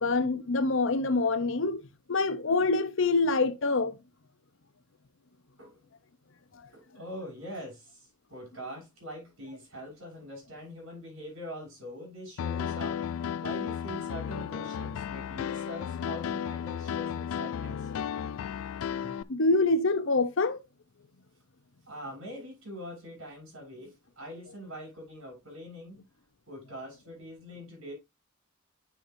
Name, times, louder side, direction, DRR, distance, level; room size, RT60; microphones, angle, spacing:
voice 1, 0.0-1.8 2.1-4.0 19.0-20.6, left 3 dB, 65° left, 0.8 m, -26 dB
voice 2, 6.7-13.0 13.4-17.9 21.9-26.0 26.5-27.9, equal, 75° right, 6.0 m, -43 dB
Piano, 12.4-19.2, left 8 dB, 80° left, 0.3 m, -34 dB
9.5 x 5.9 x 2.7 m
head